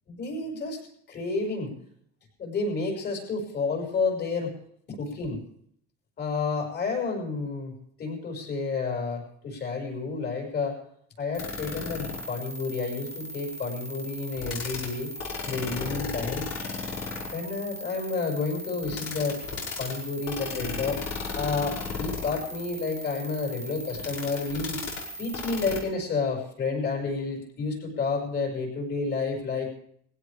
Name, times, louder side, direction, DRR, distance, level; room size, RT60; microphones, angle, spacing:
voice 1, 0.1-0.8 1.1-1.8 2.4-4.5 4.9-5.4 6.2-7.7 8.0-10.8 11.2-15.1 15.5-16.4 17.3-21.0 21.3-24.8 25.2-29.7, left 4 dB, 35° left, 1 dB, 6.2 m, -30 dB
sound 1, 11.3-25.8, left 3 dB, 50° left, 5.3 m, -36 dB
21.0 x 16.5 x 3.5 m, 0.64 s
cardioid pair, 170°, 31 cm